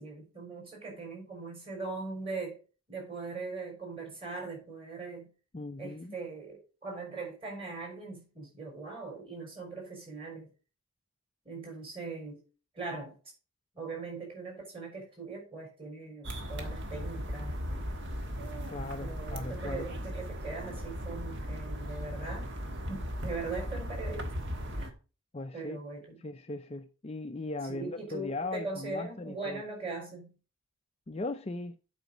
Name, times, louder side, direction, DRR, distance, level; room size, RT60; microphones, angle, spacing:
voice 1, 0.0-2.6 2.9-5.3 5.8-10.5 11.4-12.4 12.7-13.2 13.7-17.9 19.0-22.5 22.9-24.3 24.7-24.9 25.5-26.2 27.7-30.3, right 3 dB, 25° right, 4.4 m, -40 dB
voice 2, 5.5-6.2 18.7-19.9 25.3-25.8 26.2-29.6 31.1-31.8, left 2 dB, 25° left, 0.4 m, -38 dB
sound 1, 16.2-24.9, equal, 55° right, 1.3 m, -37 dB
8.0 x 5.1 x 6.0 m
head